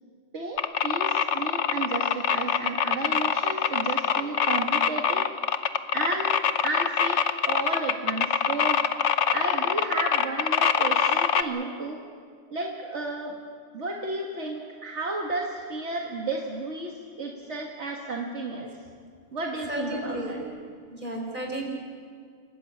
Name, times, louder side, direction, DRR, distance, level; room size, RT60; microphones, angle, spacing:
voice 1, 0.3-5.3 5.9-6.4 6.6-8.8 9.3-12.0 12.5-13.4 13.7-18.7 19.3-20.4, right 2 dB, 70° right, 0 dB, 1.9 m, -32 dB
sound 1, 0.6-11.4, left 7 dB, 80° left, 1.2 m, -24 dB
voice 2, 19.7-20.4 20.9-21.6, right 1 dB, 45° right, 1 dB, 4.5 m, -32 dB
28.0 x 14.0 x 8.5 m, 2.1 s
omnidirectional pair, 1.2 m